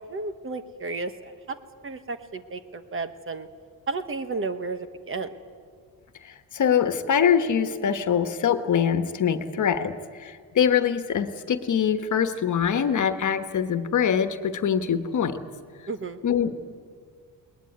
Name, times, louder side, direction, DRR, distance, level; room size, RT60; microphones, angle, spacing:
voice 1, 0.0-1.3 1.8-3.5 3.9-5.4 15.9-16.2, right 3 dB, 35° right, 9 dB, 1.3 m, -33 dB
voice 2, 6.5-9.9 10.2-15.4 16.2-16.6, left 8 dB, 55° left, 9 dB, 1.4 m, -23 dB
21.0 x 20.0 x 9.6 m, 2.1 s
cardioid pair, 130°, 36 cm